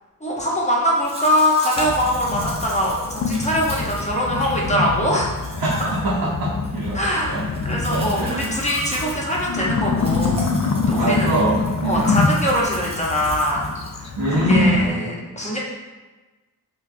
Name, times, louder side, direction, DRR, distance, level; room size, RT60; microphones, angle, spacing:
voice 1, 0.2-5.4 6.9-10.4 10.9-11.4 11.8-13.7 14.0-14.2 14.5-15.6, equal, 20° left, -3 dB, 0.8 m, -22 dB
Domestic sounds home sounds, 1.0-14.4, equal, 15° right, 0.8 m, -37 dB
sound 1, 1.8-14.9, left 4 dB, 50° left, 0.4 m, -25 dB
voice 2, 5.6-7.0 7.3-7.4 7.9-8.5 10.9-12.0 14.2-15.1, right 1 dB, 90° right, -7 dB, 0.7 m, -22 dB
4.5 x 2.3 x 2.6 m, 1.2 s
wide cardioid pair, 55°, 35 cm